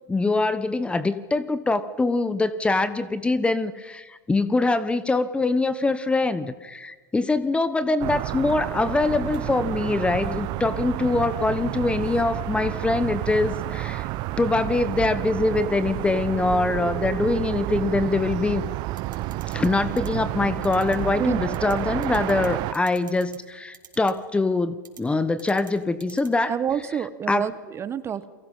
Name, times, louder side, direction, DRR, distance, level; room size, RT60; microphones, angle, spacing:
voice 1, 0.1-14.1 14.4-18.6 19.5-26.5 27.3-27.5, left 3 dB, 10° left, 14 dB, 1.1 m, -24 dB
sound 1, 8.0-22.7, right 17 dB, 45° right, 0.9 m, -30 dB
sound 2, 19.0-19.7 20.0-20.1 20.6-21.0 21.5-21.7 22.0-22.5 22.7-23.4 23.7-24.1 24.8-25.0 25.4-25.7 26.0-26.3, right 7 dB, 85° right, 4.1 m, -46 dB
voice 2, 21.2-21.5 26.5-28.3, right 8 dB, 25° right, 14 dB, 1.3 m, -28 dB
29.0 x 23.0 x 5.7 m, 1.4 s
hypercardioid pair, 100°, 11 cm